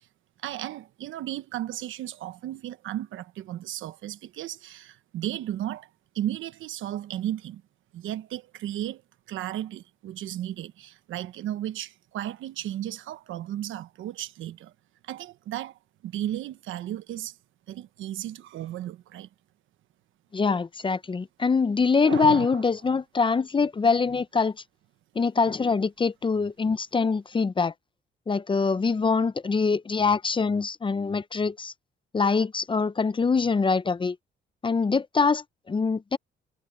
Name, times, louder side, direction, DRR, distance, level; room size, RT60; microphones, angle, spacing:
voice 1, 0.4-5.9 6.1-7.6 7.9-9.0 9.3-14.7 15.0-17.3 17.7-19.3 22.0-22.6, right 12 dB, 80° right, 1.1 m, -34 dB
voice 2, 20.3-24.5 25.2-27.7 28.3-31.7 32.1-34.2 34.6-36.2, left 4 dB, 25° left, 0.6 m, -24 dB
cardioid pair, 90°, 20 cm